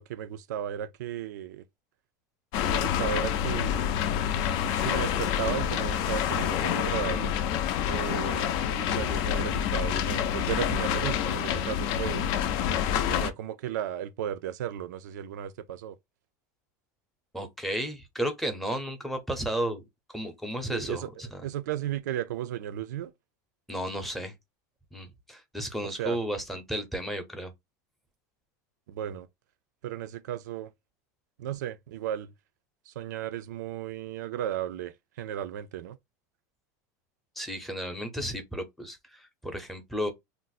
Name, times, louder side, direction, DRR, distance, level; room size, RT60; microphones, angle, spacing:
voice 1, 0.0-1.6 2.7-4.0 4.8-7.3 7.9-12.3 13.1-16.0 20.7-23.1 25.8-26.2 28.9-29.3 29.8-30.7 31.4-32.3 32.9-36.0, right 11 dB, 90° right, 0.4 m, -35 dB
sound 1, 2.5-13.3, left 9 dB, 50° left, 0.4 m, -27 dB
voice 2, 17.3-19.8 20.1-21.4 23.7-24.3 24.9-27.5 37.4-40.1, right 1 dB, ahead, 0.6 m, -33 dB
2.5 x 2.0 x 3.9 m
supercardioid pair, 145°, 9 cm